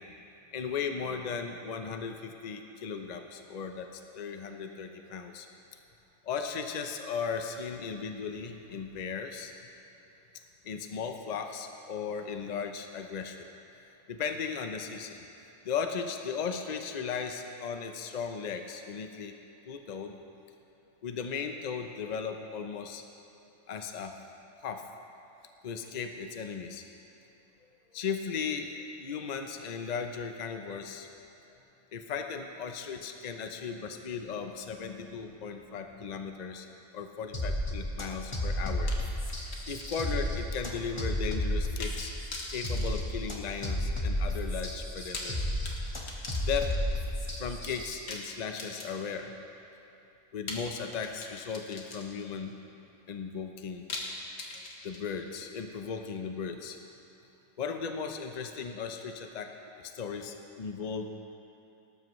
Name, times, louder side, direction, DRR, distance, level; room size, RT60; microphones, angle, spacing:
voice 1, 0.5-3.9 4.1-5.5 6.2-9.5 10.6-13.5 14.1-15.2 15.6-19.3 19.7-20.2 21.0-23.0 23.7-24.2 24.6-24.8 25.6-26.8 27.9-31.1 31.5-31.6 31.9-36.7 36.9-38.9 39.7-40.3 40.5-42.1 42.5-45.5 46.4-46.7 47.4-49.3 50.3-52.6 53.1-53.8 54.8-56.8 57.6-61.1, left 6 dB, 40° left, 5 dB, 0.7 m, -36 dB
sound 1, 37.3-47.9, equal, 20° left, 1.3 m, -33 dB
sound 2, 38.9-40.4 40.7-40.8 41.8-42.0 42.3-43.8 44.9-47.0 48.1-49.3 50.5-52.4 53.9-55.3, left 3 dB, 75° left, 1.8 m, -42 dB
18.5 x 12.5 x 3.2 m, 3.0 s
omnidirectional pair, 1.5 m